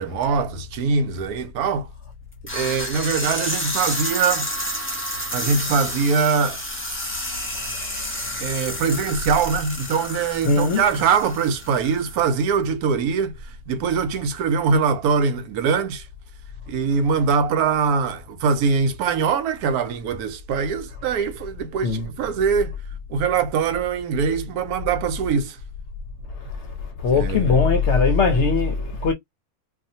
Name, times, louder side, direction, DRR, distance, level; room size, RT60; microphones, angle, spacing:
voice 1, 0.0-1.9 2.5-4.5 5.3-6.6 8.4-13.4 13.7-16.1 16.7-22.8 23.1-25.6 27.1-27.6, right 5 dB, 80° right, 1.1 m, -22 dB
sound 1, 2.5-12.2, equal, 15° left, 0.5 m, -30 dB
voice 2, 10.4-10.8 21.8-22.1 27.0-29.1, left 4 dB, 60° left, 0.8 m, -19 dB
2.6 x 2.4 x 2.6 m
omnidirectional pair, 1.6 m